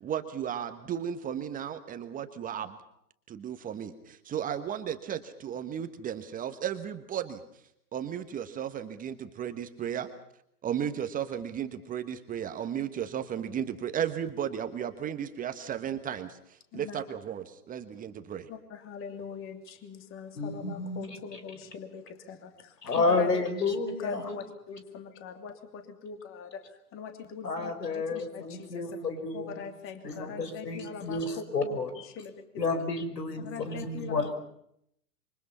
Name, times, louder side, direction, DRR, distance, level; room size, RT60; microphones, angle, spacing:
voice 1, 0.0-2.8 3.3-7.4 7.9-10.1 10.6-18.5, right 9 dB, 15° right, 9 dB, 1.3 m, -34 dB
voice 2, 16.7-17.0 18.5-23.3 23.9-29.0 29.3-32.3 32.7-32.8 33.4-34.3, left 6 dB, 25° left, 7 dB, 2.9 m, -42 dB
voice 3, 20.3-21.1 22.8-24.4 27.4-29.6 30.0-31.9 32.6-34.3, left 3 dB, 80° left, 10 dB, 4.9 m, -31 dB
27.0 x 24.0 x 5.6 m, 0.73 s
hypercardioid pair, 120°, 48 cm